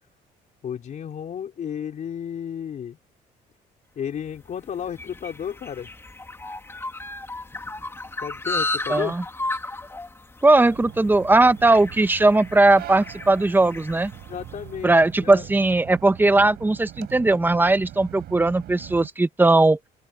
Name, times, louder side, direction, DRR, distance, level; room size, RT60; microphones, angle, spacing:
voice 1, 0.6-3.0 4.0-5.9 8.2-9.2 14.3-14.9 15.2-15.5, left 8 dB, 50° left, 4.1 m, -32 dB
sound 1, 4.3-14.9, left 2 dB, 15° left, 2.8 m, -34 dB
voice 2, 8.9-9.2 10.4-14.1 14.8-19.8, right 2 dB, 10° right, 1.2 m, -18 dB
sound 2, 10.6-19.1, right 13 dB, 70° right, 6.8 m, -41 dB
open air
cardioid pair, 110°, 17 cm